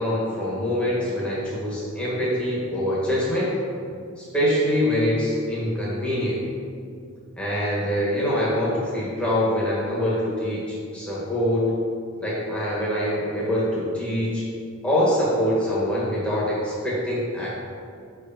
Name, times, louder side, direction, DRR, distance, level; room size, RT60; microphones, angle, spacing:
voice 1, 0.0-3.5 4.2-6.4 7.4-11.7 12.2-14.4 14.8-17.5, equal, 5° left, -8 dB, 1.6 m, -24 dB
6.5 x 4.9 x 5.2 m, 2.3 s
head